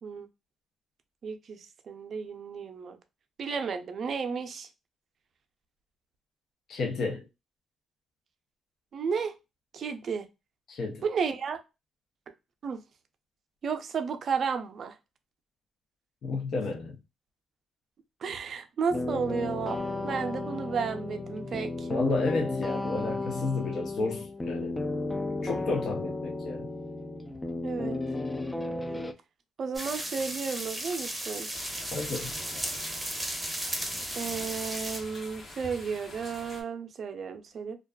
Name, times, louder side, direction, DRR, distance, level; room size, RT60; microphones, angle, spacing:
voice 1, 1.2-3.0 3.4-4.7 8.9-9.3 9.7-10.3 11.0-11.6 12.6-12.8 13.6-15.0 18.2-19.8 20.0-21.9 27.6-28.0 29.6-31.5 34.1-37.8, right 6 dB, 55° right, 0.5 m, -33 dB
voice 2, 6.7-7.3 10.7-11.0 16.2-17.0 21.9-24.8 25.4-26.7 31.9-32.3, left 3 dB, 65° left, 0.5 m, -31 dB
sound 1, 18.9-29.1, left 2 dB, 15° left, 0.3 m, -33 dB
sound 2, 29.7-35.0, right 1 dB, 5° right, 0.7 m, -35 dB
sound 3, 31.5-36.6, left 1 dB, 45° left, 1.1 m, -45 dB
2.4 x 2.3 x 2.2 m
cardioid pair, 90°, 0 cm